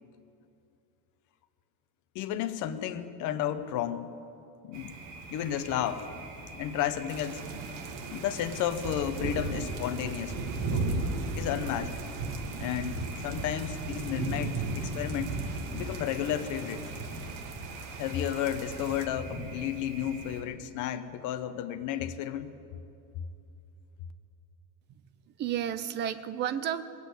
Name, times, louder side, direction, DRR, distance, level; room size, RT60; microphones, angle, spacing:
voice 1, 2.1-4.1 4.6-4.9 5.3-6.0 6.5-7.4 8.1-10.4 10.7-11.1 11.3-11.9 12.6-15.4 15.7-16.8 18.0-22.5, left 10 dB, 45° left, 11 dB, 0.8 m, -32 dB
Thunder, 4.7-20.4, right 3 dB, 40° right, 1.9 m, -37 dB
sound 1, 7.1-19.1, right 6 dB, 85° right, 1.6 m, -45 dB
voice 2, 25.3-26.8, right 10 dB, 25° right, 13 dB, 0.4 m, -32 dB
20.0 x 8.3 x 8.1 m, 2.7 s
cardioid pair, 165°, 43 cm